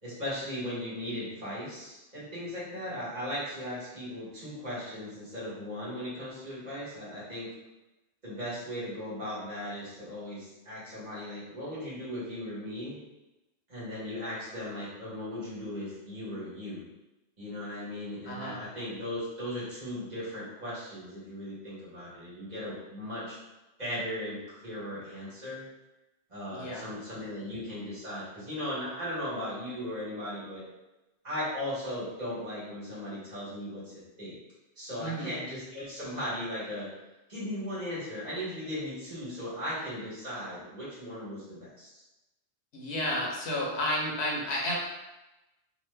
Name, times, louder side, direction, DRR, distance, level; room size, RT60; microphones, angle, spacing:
voice 1, 0.0-7.5 8.2-13.0 13.7-16.9 17.4-23.4 23.8-25.6 26.3-30.6 31.2-34.3 34.8-36.9 37.3-42.0, left 1 dB, 40° right, -9 dB, 1.3 m, -37 dB
voice 2, 18.3-18.6 26.6-26.9 35.0-35.3 42.7-44.7, left 1 dB, 70° left, -3 dB, 1.0 m, -31 dB
2.9 x 2.1 x 3.2 m, 1.0 s
omnidirectional pair, 1.2 m